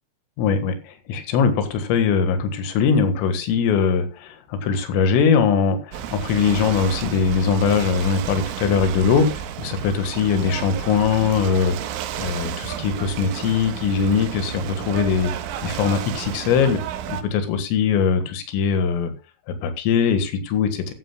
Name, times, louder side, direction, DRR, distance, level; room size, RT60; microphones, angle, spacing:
voice 1, 0.4-15.3 15.6-16.8 17.1-19.1 19.5-20.9, left 6 dB, 90° left, 9 dB, 4.3 m, -21 dB
Ocean / Boat Water vehicle, 5.9-17.2, right 10 dB, 90° right, 3.7 m, -32 dB
14.0 x 14.0 x 2.3 m, 0.30 s
omnidirectional pair, 5.7 m